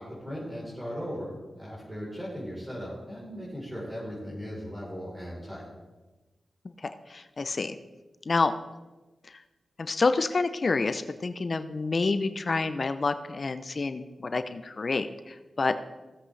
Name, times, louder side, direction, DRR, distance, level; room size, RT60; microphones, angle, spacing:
voice 1, 0.0-5.6, equal, 15° right, -6 dB, 3.9 m, -38 dB
voice 2, 6.8-7.8 8.3-8.5 9.8-15.7, left 3 dB, 55° left, 11 dB, 0.6 m, -28 dB
16.5 x 7.8 x 3.3 m, 1.2 s
cardioid pair, 50°, 0 cm